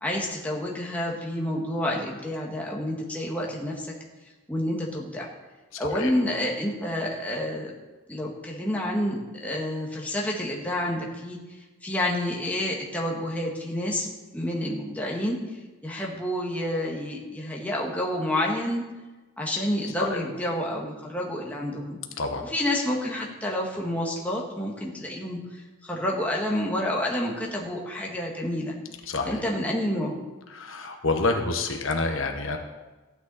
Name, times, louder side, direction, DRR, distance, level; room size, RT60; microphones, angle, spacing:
voice 1, 0.0-3.9 4.5-5.3 5.8-7.7 8.1-11.4 11.8-14.1 14.3-15.4 15.8-18.8 19.4-22.0 22.5-28.8 29.3-30.2, left 1 dB, 5° left, -2 dB, 1.7 m, -29 dB
voice 2, 5.7-6.1 20.0-20.2 22.2-22.4 29.1-29.4 30.5-32.6, left 3 dB, 75° left, 4 dB, 1.2 m, -28 dB
14.5 x 9.5 x 4.2 m, 1.2 s
head